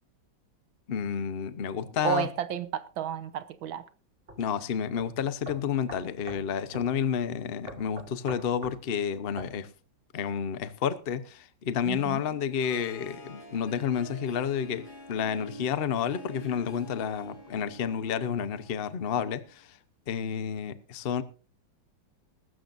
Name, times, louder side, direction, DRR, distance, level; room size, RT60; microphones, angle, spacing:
voice 1, 0.9-2.3 4.4-9.7 10.1-19.8 20.1-21.2, left 7 dB, 45° left, 0.8 m, -30 dB
voice 2, 2.0-3.8 11.9-12.2, right 9 dB, 85° right, 1.7 m, -32 dB
sound 1, 4.3-4.4 5.0-5.1 5.4-6.5 6.7-6.9 7.7-8.8 9.4-9.5, right 1 dB, 30° right, 2.7 m, -42 dB
Harp, 12.4-19.5, right 1 dB, 25° left, 3.2 m, -47 dB
21.0 x 12.5 x 2.6 m
omnidirectional pair, 2.1 m